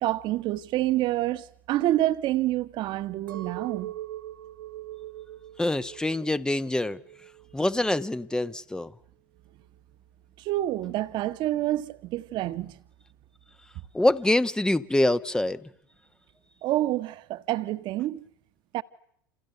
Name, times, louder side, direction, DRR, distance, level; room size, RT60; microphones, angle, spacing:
voice 1, 0.0-3.9 10.4-12.8 16.6-18.2 18.7-18.8, right 15 dB, 45° right, 1.7 m, -27 dB
Chink clink, 3.3-7.6 8.0-8.6, right 13 dB, 80° right, 2.1 m, -41 dB
voice 2, 5.6-7.0 7.5-8.9 13.9-15.7, left 1 dB, 5° left, 1.2 m, -25 dB
29.0 x 28.5 x 6.9 m
figure-of-eight pair, 80°, 11 cm